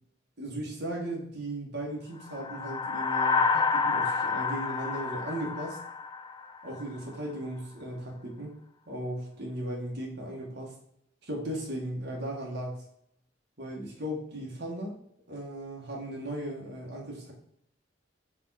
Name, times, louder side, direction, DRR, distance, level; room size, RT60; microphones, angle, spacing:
voice 1, 0.4-5.8 6.6-8.5 8.9-10.8 11.2-12.8 13.6-15.0 15.3-17.3, right 1 dB, 65° right, -1 dB, 2.0 m, -37 dB
sound 1, 2.3-6.8, left 4 dB, 25° left, 0.4 m, -29 dB
5.3 x 4.7 x 4.3 m, 0.72 s
head